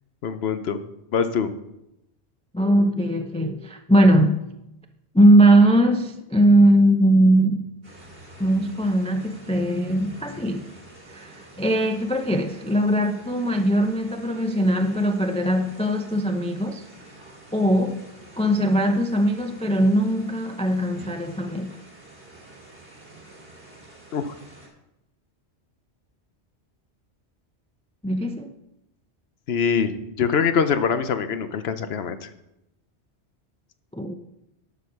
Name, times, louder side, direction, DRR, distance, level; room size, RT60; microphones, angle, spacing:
voice 1, 0.2-0.8 1.1-1.5 24.1-24.3 29.5-29.9 30.2-32.3, left 6 dB, 70° left, 1.0 m, -23 dB
voice 2, 2.5-4.4 5.1-7.6 8.4-10.7 11.1-16.8 17.5-18.0 18.4-21.7 28.0-28.5 33.9-34.1, right 1 dB, 10° left, 0.5 m, -20 dB
sound 1, 7.8-24.7, right 2 dB, 55° right, 2.8 m, -47 dB
11.5 x 5.4 x 6.6 m
omnidirectional pair, 1.1 m